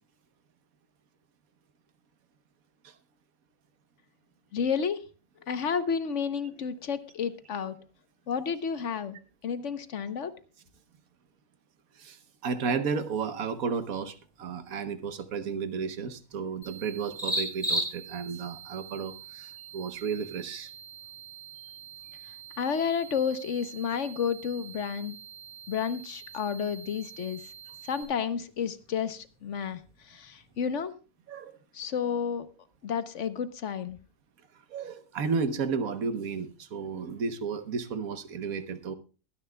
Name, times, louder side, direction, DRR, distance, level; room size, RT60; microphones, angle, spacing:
voice 1, 4.5-5.0 5.5-7.7 8.3-9.2 9.4-10.3 22.6-25.2 25.7-27.4 27.9-29.8 30.1-30.9 31.7-32.5 32.8-34.0, left 7 dB, 60° left, 12 dB, 1.1 m, -31 dB
voice 2, 12.0-20.7 31.3-31.6 34.7-38.9, right 5 dB, 75° right, 11 dB, 1.5 m, -33 dB
sound 1, 13.1-30.9, equal, ahead, 6.2 m, -42 dB
sound 2, 16.6-28.0, right 10 dB, 25° left, 2.6 m, -47 dB
22.0 x 10.0 x 2.3 m, 0.33 s
omnidirectional pair, 1.5 m